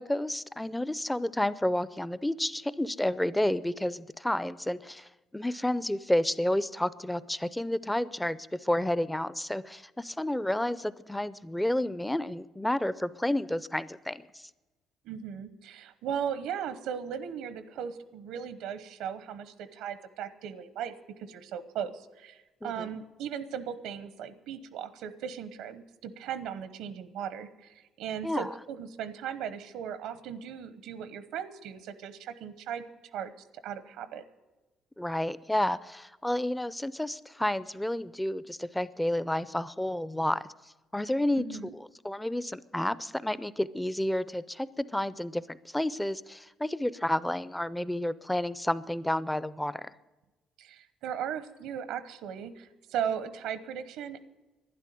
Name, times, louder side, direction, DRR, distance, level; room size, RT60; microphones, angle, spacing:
voice 1, 0.0-14.5 22.6-22.9 28.2-28.5 35.0-40.4 40.9-41.4 41.7-49.9, left 1 dB, 5° left, 17 dB, 0.4 m, -30 dB
voice 2, 15.0-32.8 33.1-33.3 33.6-34.2 41.4-41.7 50.6-54.2, right 8 dB, 85° right, 13 dB, 0.9 m, -37 dB
12.0 x 10.5 x 9.1 m, 1.1 s
cardioid pair, 145°, 0 cm